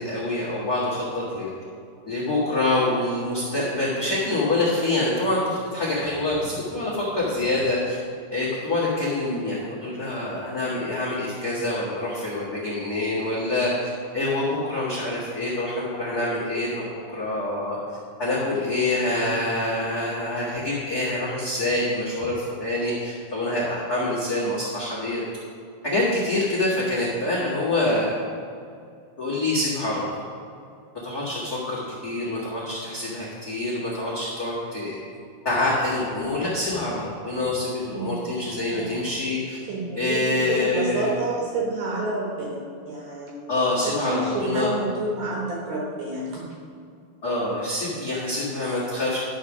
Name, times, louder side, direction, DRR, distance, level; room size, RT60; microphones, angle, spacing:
voice 1, 0.0-1.5 2.1-8.0 8.3-13.7 14.1-17.8 18.2-25.2 25.8-28.1 29.2-30.1 31.0-35.0 35.4-39.6 40.0-41.1 43.5-44.7 47.2-49.2, left 2 dB, 60° left, -7 dB, 0.9 m, -26 dB
voice 2, 37.9-38.2 38.7-38.9 39.7-42.6 42.9-43.5 43.8-46.4, right 2 dB, 65° right, -3 dB, 2.1 m, -29 dB
11.5 x 4.6 x 6.1 m, 2.3 s
omnidirectional pair, 4.8 m